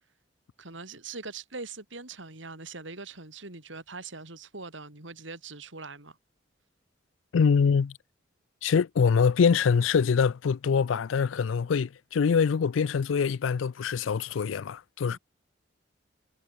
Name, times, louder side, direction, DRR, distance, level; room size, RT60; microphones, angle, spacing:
voice 1, 0.6-6.2 15.0-15.2, right 3 dB, 80° right, 4.2 m, -42 dB
voice 2, 7.3-7.9 8.6-15.2, left 6 dB, 90° left, 0.4 m, -24 dB
head